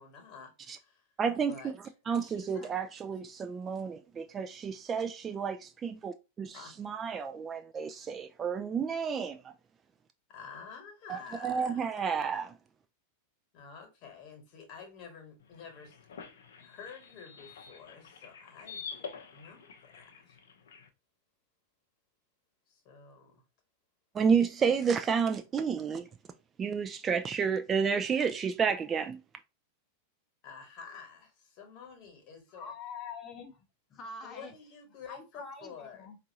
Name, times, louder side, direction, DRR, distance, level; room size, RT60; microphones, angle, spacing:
voice 1, 0.0-1.1 1.5-1.7 2.2-2.7 6.5-6.7 8.0-8.1 10.3-11.9 13.5-16.0 16.6-20.4 22.7-23.4 30.4-32.7 34.2-36.1, left 6 dB, 40° left, 1.2 m, -49 dB
voice 2, 1.2-1.5 2.1-9.5 11.1-12.5 24.1-26.1 26.6-29.2, right 6 dB, 20° right, 0.3 m, -31 dB
sound 1, 15.4-20.9, left 6 dB, 60° left, 0.6 m, -47 dB
voice 3, 32.5-33.7 33.9-34.5 35.1-36.2, left 4 dB, 25° left, 0.7 m, -44 dB
4.6 x 2.4 x 2.7 m
figure-of-eight pair, 90°, 0 cm